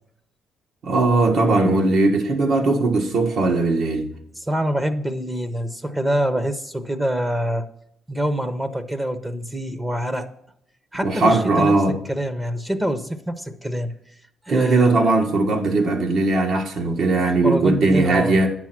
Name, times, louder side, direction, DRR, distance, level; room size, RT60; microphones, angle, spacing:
voice 1, 0.8-4.1 11.0-12.0 14.5-18.5, right 2 dB, 65° right, 1.4 m, -19 dB
voice 2, 4.4-7.7 8.1-10.3 10.9-11.8 12.0-13.9 14.4-15.1 17.4-18.4, equal, 10° right, 0.7 m, -25 dB
10.0 x 6.1 x 5.9 m
cardioid pair, 125°, 0 cm